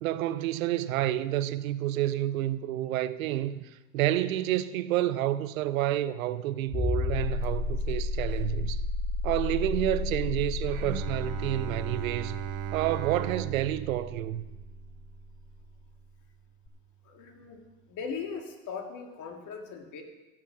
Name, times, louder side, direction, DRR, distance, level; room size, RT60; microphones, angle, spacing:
voice 1, 0.0-8.8 9.2-12.4 12.7-14.5, right 13 dB, 90° right, 0.6 m, -29 dB
sound 1, 6.7-15.2 16.7-16.8, left 3 dB, 15° left, 0.8 m, -32 dB
Bowed string instrument, 10.6-15.9, right 12 dB, 50° right, 0.8 m, -38 dB
voice 2, 17.0-17.6 17.9-20.0, left 5 dB, 45° left, 2.2 m, -39 dB
15.0 x 6.1 x 5.9 m
hypercardioid pair, 100°, 40 cm